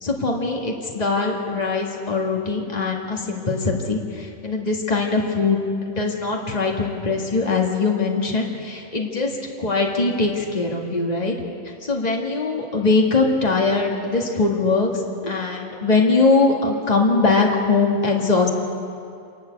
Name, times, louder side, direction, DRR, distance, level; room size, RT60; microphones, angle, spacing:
voice 1, 0.0-5.6 5.9-11.4 11.8-14.9 15.2-18.5, left 3 dB, 30° left, 0 dB, 2.0 m, -21 dB
27.0 x 12.0 x 8.3 m, 2.5 s
omnidirectional pair, 1.4 m